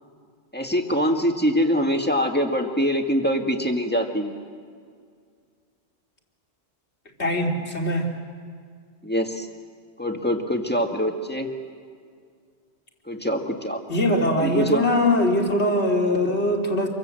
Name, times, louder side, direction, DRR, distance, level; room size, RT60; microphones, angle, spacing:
voice 1, 0.5-4.3 9.0-9.5 10.0-11.5 13.1-13.8 14.4-14.9, equal, 10° left, 3 dB, 2.0 m, -24 dB
voice 2, 7.2-8.1 13.9-16.9, left 1 dB, 65° left, 1 dB, 3.3 m, -22 dB
27.0 x 23.5 x 7.7 m, 2.1 s
omnidirectional pair, 1.2 m